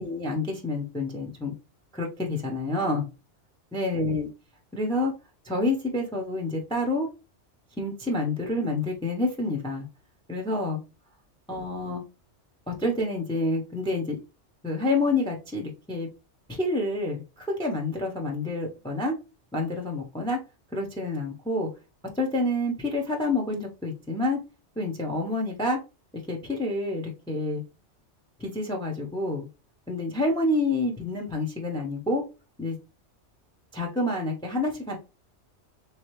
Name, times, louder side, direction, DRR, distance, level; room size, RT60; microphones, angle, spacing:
voice 1, 0.0-1.5 1.9-3.1 3.7-4.3 4.7-5.1 5.4-7.1 7.8-9.8 10.3-10.8 11.5-12.0 12.7-14.1 14.6-16.1 16.5-19.1 19.5-20.4 20.7-21.7 22.2-24.4 24.8-25.8 26.3-27.6 28.4-29.5 29.9-32.2 32.6-32.8 33.7-35.0, left 2 dB, 5° left, 1 dB, 0.6 m, -28 dB
3.7 x 3.2 x 3.0 m, 0.29 s
omnidirectional pair, 1.2 m